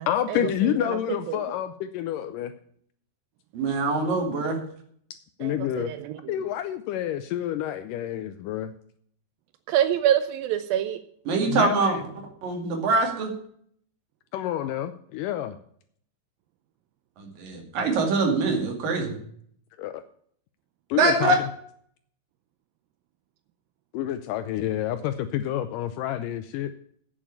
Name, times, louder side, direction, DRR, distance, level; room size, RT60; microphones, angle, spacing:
voice 1, 0.1-2.5 5.4-5.9 6.3-8.7 11.5-12.0 14.3-15.6 19.8-20.0 20.9-21.4 23.9-26.7, left 11 dB, 80° left, 10 dB, 2.0 m, -28 dB
voice 2, 3.5-4.6 11.3-12.0 12.4-13.3 17.2-19.1 21.0-21.4, right 3 dB, 70° right, 2 dB, 3.9 m, -24 dB
voice 3, 5.4-6.2 9.7-11.0, right 11 dB, 85° right, 11 dB, 2.4 m, -25 dB
8.8 x 7.2 x 8.4 m, 0.63 s
omnidirectional pair, 4.2 m